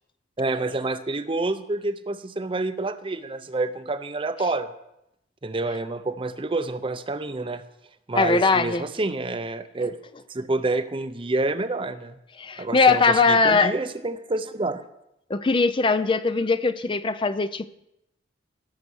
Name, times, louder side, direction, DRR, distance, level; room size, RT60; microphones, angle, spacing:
voice 1, 0.4-4.7 5.4-7.6 8.1-10.0 10.3-12.2 12.6-14.8, right 2 dB, 25° right, 11 dB, 0.6 m, -28 dB
voice 2, 8.1-8.8 12.4-13.7 15.3-17.7, left 4 dB, 25° left, 12 dB, 0.4 m, -20 dB
16.5 x 6.7 x 6.2 m, 0.84 s
head